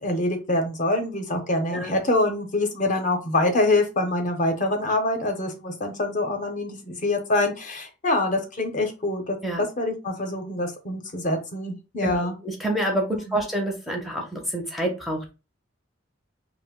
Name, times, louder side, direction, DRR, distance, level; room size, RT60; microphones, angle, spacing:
voice 1, 0.0-9.4 9.8-12.4 13.1-13.4, left 2 dB, 40° left, 4 dB, 0.6 m, -25 dB
voice 2, 12.4-15.3, right 1 dB, ahead, 1 dB, 0.5 m, -27 dB
2.5 x 2.0 x 3.5 m, 0.30 s
head